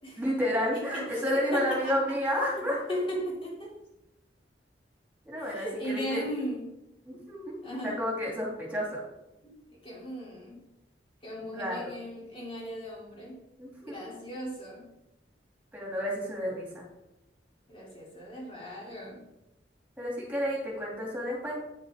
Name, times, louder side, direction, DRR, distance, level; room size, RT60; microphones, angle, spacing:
voice 1, 0.2-2.8 5.3-6.2 7.0-7.6 7.8-9.0 11.5-11.9 13.6-14.1 15.7-16.8 20.0-21.6, equal, 10° right, -3 dB, 2.4 m, -31 dB
voice 2, 0.7-2.2 2.6-3.8 5.4-6.7 7.6-8.0 9.4-10.7 11.2-13.4 13.8-14.9 17.7-19.3, equal, 30° left, -4 dB, 2.6 m, -37 dB
8.8 x 7.1 x 3.5 m, 0.94 s
head